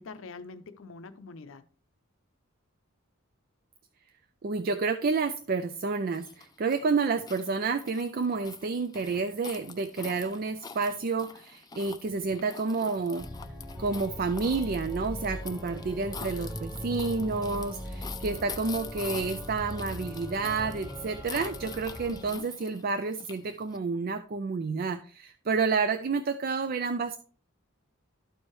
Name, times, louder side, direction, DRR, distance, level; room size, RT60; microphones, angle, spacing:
voice 1, 0.0-1.7 22.1-22.5, left 3 dB, 70° left, 0.6 m, -45 dB
voice 2, 4.4-13.3 13.8-27.2, right 4 dB, 45° right, 0.4 m, -30 dB
foot steps on gravel, 6.1-23.8, left 6 dB, 20° left, 0.4 m, -45 dB
Organ, 13.2-22.4, equal, 5° right, 1.0 m, -40 dB
12.5 x 4.5 x 3.1 m
head